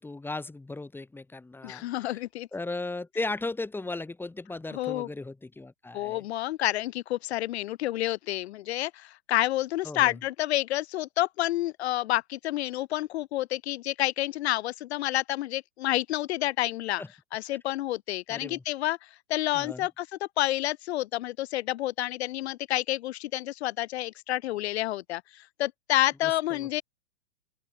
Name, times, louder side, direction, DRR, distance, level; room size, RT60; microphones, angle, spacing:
voice 1, 0.0-2.2 2.5-6.2 9.8-10.1 17.0-17.1 18.3-18.6 19.5-19.9 26.2-26.7, left 2 dB, 5° left, 4.0 m, -36 dB
voice 2, 1.6-2.5 4.7-5.1 5.9-17.0 17.3-26.8, left 15 dB, 60° left, 1.6 m, -29 dB
open air
hypercardioid pair, 135°, 36 cm